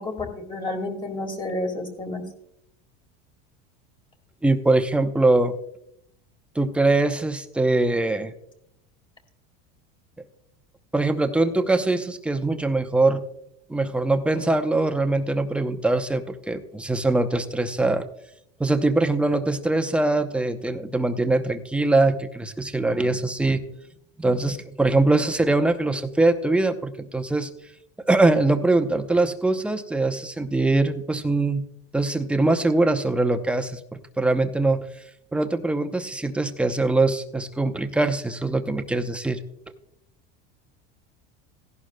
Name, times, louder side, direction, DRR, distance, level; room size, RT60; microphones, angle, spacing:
voice 1, 0.0-2.2, left 2 dB, 15° left, 5 dB, 1.9 m, -30 dB
voice 2, 4.4-5.5 6.6-8.3 10.9-13.2 13.7-18.0 18.6-23.6 24.2-27.5 28.1-31.6 31.9-34.8 35.3-39.4, right 2 dB, 5° right, 7 dB, 0.6 m, -22 dB
16.5 x 11.5 x 2.2 m, 0.78 s
supercardioid pair, 135°, 30 cm